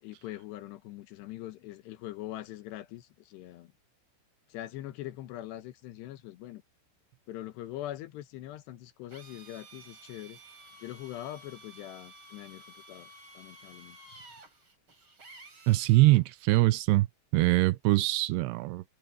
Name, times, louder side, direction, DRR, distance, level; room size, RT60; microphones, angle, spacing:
voice 1, 0.0-3.7 4.5-6.6 7.3-10.4 10.8-13.1 13.3-14.0, left 14 dB, 75° left, 3.2 m, -42 dB
Drill, 9.1-16.2, right 1 dB, 30° right, 5.6 m, -53 dB
voice 2, 15.7-17.1 17.3-18.8, right 20 dB, 80° right, 2.6 m, -23 dB
omnidirectional pair, 5.0 m